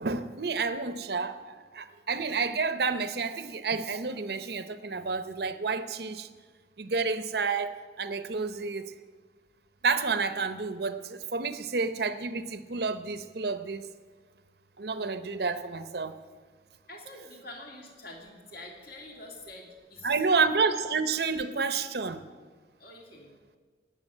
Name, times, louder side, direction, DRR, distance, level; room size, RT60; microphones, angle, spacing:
voice 1, 0.0-6.3 6.8-8.9 9.8-13.9 14.8-16.2 20.0-22.2, right 4 dB, 60° right, 11 dB, 0.7 m, -30 dB
voice 2, 16.9-20.5 22.8-23.3, left 2 dB, 55° left, 0 dB, 3.0 m, -46 dB
18.0 x 7.0 x 9.0 m, 1.5 s
head